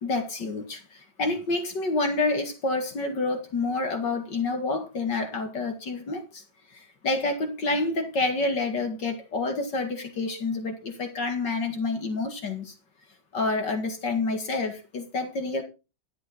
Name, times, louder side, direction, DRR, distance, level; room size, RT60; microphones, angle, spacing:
voice 1, 0.0-6.4 6.7-12.7 13.3-15.6, left 3 dB, 65° left, 5 dB, 2.7 m, -28 dB
11.5 x 9.0 x 4.3 m, 0.30 s
omnidirectional pair, 2.1 m